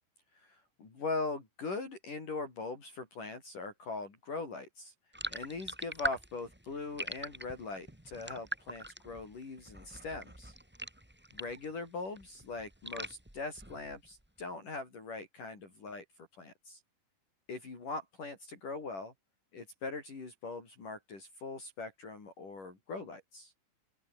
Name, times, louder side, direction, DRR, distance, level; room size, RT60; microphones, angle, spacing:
voice 1, 0.4-4.9 5.3-10.5 11.3-16.8 17.5-19.1 19.5-23.5, left 3 dB, 45° left, 7.1 m, -41 dB
sound 1, 5.1-11.7 12.0-14.1, right 1 dB, 15° right, 0.4 m, -42 dB
open air
omnidirectional pair, 5.1 m